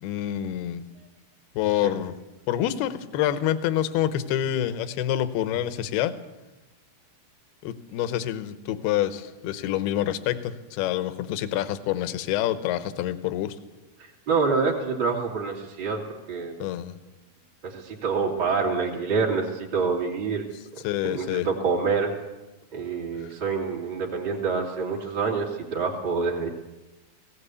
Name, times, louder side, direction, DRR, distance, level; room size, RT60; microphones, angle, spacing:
voice 1, 0.0-0.8 1.6-2.1 2.5-6.1 7.6-13.6 16.6-17.0 20.8-21.5, left 12 dB, 80° left, 12 dB, 2.9 m, -27 dB
voice 2, 14.0-16.6 17.6-20.5 20.7-22.1 22.7-26.5, right 5 dB, 30° right, -1 dB, 2.7 m, -27 dB
18.0 x 17.5 x 8.3 m, 1.1 s
omnidirectional pair, 4.7 m